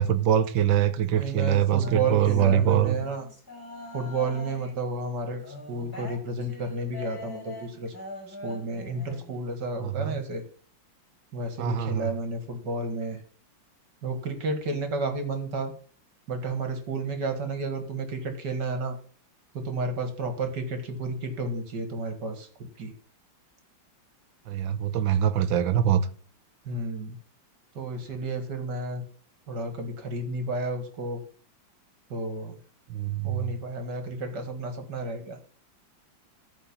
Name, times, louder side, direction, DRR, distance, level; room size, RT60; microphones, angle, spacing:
voice 1, 0.0-3.0 9.8-10.2 11.6-12.1 24.5-26.0 32.9-33.5, right 10 dB, 85° right, 1.6 m, -24 dB
voice 2, 1.0-3.3 3.9-5.4 5.7-7.9 8.3-10.4 11.3-13.2 14.0-15.7 16.3-19.0 19.5-22.5 22.8-22.9 26.7-27.2 27.8-29.0 29.5-31.2 32.1-32.6 33.2-35.4, right 2 dB, 65° right, 2.5 m, -31 dB
sound 1, 1.8-4.8 5.4-9.3, left 2 dB, 10° left, 4.1 m, -43 dB
13.5 x 4.6 x 7.1 m
omnidirectional pair, 2.1 m